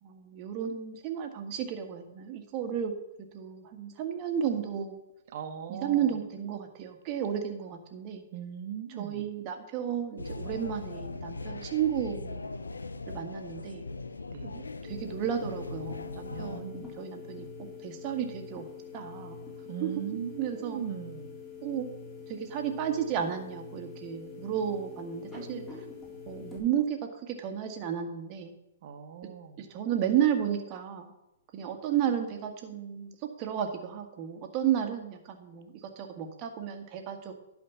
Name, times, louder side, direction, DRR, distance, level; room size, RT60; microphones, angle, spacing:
voice 1, 0.0-2.9 3.2-5.0 5.8-8.2 8.9-12.4 13.1-13.8 14.4-18.7 18.9-19.4 19.8-19.9 20.4-20.8 21.6-21.9 22.3-25.8 26.3-28.5 29.6-31.1 31.5-37.3, right 9 dB, 35° right, 5 dB, 1.7 m, -33 dB
voice 2, 5.3-6.1 8.3-9.3 14.3-14.5 16.3-17.0 19.7-21.4 28.8-29.6, right 8 dB, 50° right, 7 dB, 1.4 m, -39 dB
sound 1, 10.2-16.6, left 3 dB, 90° left, 0.7 m, -40 dB
sound 2, 14.9-26.6, left 5 dB, 15° left, 3.7 m, -45 dB
11.0 x 5.1 x 7.2 m, 0.89 s
hypercardioid pair, 125°, 0 cm